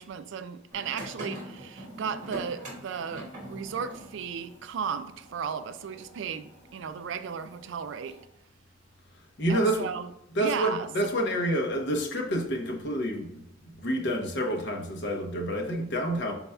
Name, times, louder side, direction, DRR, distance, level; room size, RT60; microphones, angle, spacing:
voice 1, 0.0-8.2 9.5-10.1 10.4-11.1, right 6 dB, 70° right, 0.4 m, -35 dB
sound 1, 0.7-8.2, right 1 dB, 40° right, 1.4 m, -44 dB
voice 2, 9.4-9.9 10.3-13.4 13.8-16.3, right 1 dB, 65° left, 0.9 m, -28 dB
5.5 x 4.0 x 2.2 m
head